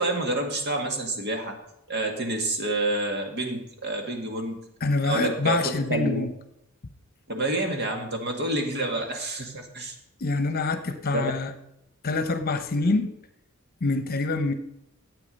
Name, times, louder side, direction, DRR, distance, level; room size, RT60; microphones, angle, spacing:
voice 1, 0.0-1.6 1.9-4.6 5.0-6.3 7.3-9.9 11.1-11.3, right 2 dB, 50° right, 3 dB, 2.0 m, -28 dB
voice 2, 4.8-6.3 10.2-11.5 12.0-13.1 13.8-14.5, left 3 dB, 45° left, 10 dB, 0.9 m, -25 dB
12.0 x 8.6 x 5.4 m, 0.80 s
head